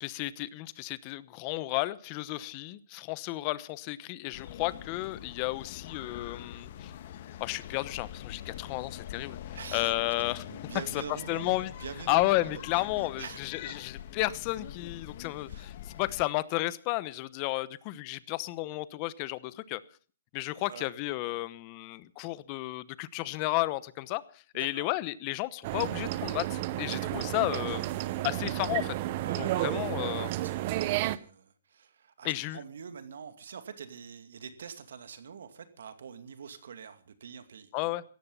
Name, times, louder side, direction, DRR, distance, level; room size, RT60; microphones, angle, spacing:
voice 1, 0.0-6.9 7.4-9.4 9.7-10.4 11.3-11.7 12.1-19.8 20.3-27.9 28.2-29.0 29.4-30.3 32.2-32.6 37.7-38.0, left 19 dB, 30° left, 0.9 m, -32 dB
sound 1, 4.3-16.3, left 10 dB, 50° left, 1.4 m, -44 dB
voice 2, 9.5-10.2 10.5-12.6 13.0-13.8 15.5-15.7 20.6-20.9 24.5-24.9 29.2-29.8 30.0-37.9, right 7 dB, 70° right, 2.4 m, -45 dB
sound 2, 25.6-31.2, right 15 dB, 40° right, 0.8 m, -32 dB
17.0 x 14.0 x 5.5 m
hypercardioid pair, 150°, 0 cm